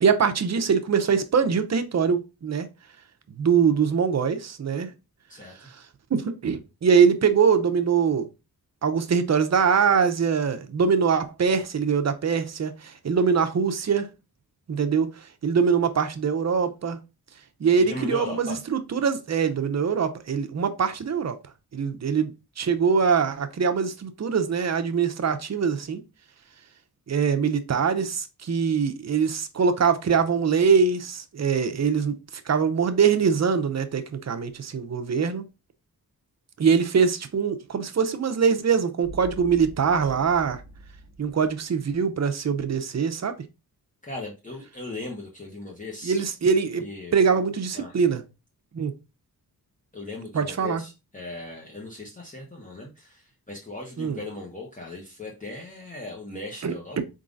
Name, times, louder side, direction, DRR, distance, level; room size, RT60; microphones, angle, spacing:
voice 1, 0.0-2.7 3.4-4.9 6.1-8.3 8.8-14.1 14.7-17.0 17.6-21.4 21.7-26.0 27.1-32.1 32.5-35.4 36.6-40.6 41.2-43.3 46.0-46.8 47.1-48.2 48.7-48.9 50.3-50.8 54.0-54.2 56.6-57.0, right 6 dB, 50° right, 0.7 m, -23 dB
voice 2, 5.3-5.7 17.8-18.6 44.0-46.2 46.8-47.5 47.7-48.0 49.9-57.0, left 2 dB, 20° left, 1.0 m, -38 dB
sound 1, 39.0-42.2, right 1 dB, 75° left, 2.0 m, -44 dB
4.6 x 3.7 x 2.5 m
wide cardioid pair, 115°, 36 cm